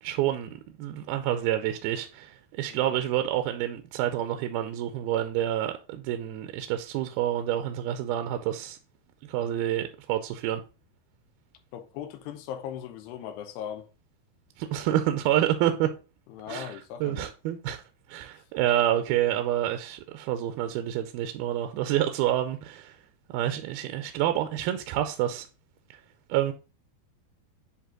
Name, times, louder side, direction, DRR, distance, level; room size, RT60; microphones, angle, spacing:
voice 1, 0.0-8.8 9.3-10.6 14.6-15.9 16.5-16.7 17.0-17.8 18.1-23.0 23.3-25.5 26.3-26.5, right 12 dB, 80° right, 2.4 m, -28 dB
voice 2, 2.7-3.0 11.7-13.9 16.3-17.3, left 9 dB, 90° left, 3.0 m, -39 dB
10.0 x 3.6 x 3.7 m
omnidirectional pair, 4.7 m